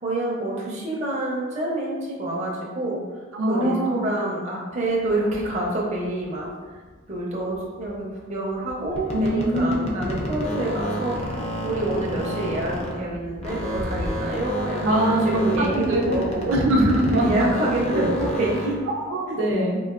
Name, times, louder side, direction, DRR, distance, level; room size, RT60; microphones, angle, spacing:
voice 1, 0.0-6.8 7.1-16.6 17.1-18.8 19.4-19.5, right 1 dB, 35° right, -4 dB, 0.5 m, -27 dB
voice 2, 3.3-4.0 9.1-10.0 14.8-16.1 16.5-17.5 17.9-18.1 18.9-19.8, right 1 dB, 80° right, -2 dB, 0.6 m, -22 dB
sound 1, 4.8-14.7, left 1 dB, 85° left, 0.9 m, -42 dB
sound 2, 8.9-13.1 13.4-18.8, equal, 30° left, 0.4 m, -30 dB
3.7 x 2.4 x 2.4 m, 1.4 s
head